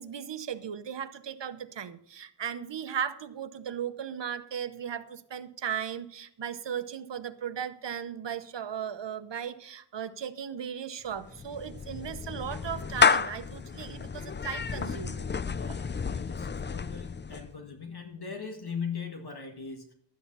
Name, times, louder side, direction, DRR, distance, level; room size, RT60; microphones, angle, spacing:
voice 1, 0.0-15.3 15.7-15.8, right 8 dB, 90° right, 11 dB, 0.9 m, -37 dB
Clapping / Meow, 11.1-17.5, left 5 dB, 25° left, 0.4 m, -30 dB
voice 2, 15.5-19.9, left 6 dB, 65° left, 4 dB, 1.9 m, -39 dB
12.0 x 9.6 x 5.5 m, 0.66 s
wide cardioid pair, 95°, 42 cm